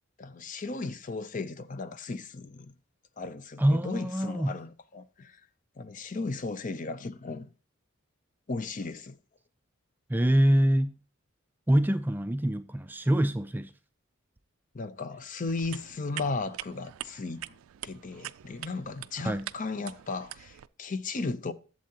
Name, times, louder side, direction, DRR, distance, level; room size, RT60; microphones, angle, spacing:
voice 1, 0.2-2.7 3.2-5.4 5.8-7.5 8.5-9.2 14.7-21.5, left 3 dB, 40° left, 0.5 m, -36 dB
voice 2, 3.6-4.6 10.1-11.0 11.7-13.7 19.2-19.5, right 1 dB, 10° right, 0.3 m, -25 dB
sound 1, 15.5-20.7, right 13 dB, 85° right, 0.3 m, -44 dB
11.5 x 7.5 x 2.8 m
head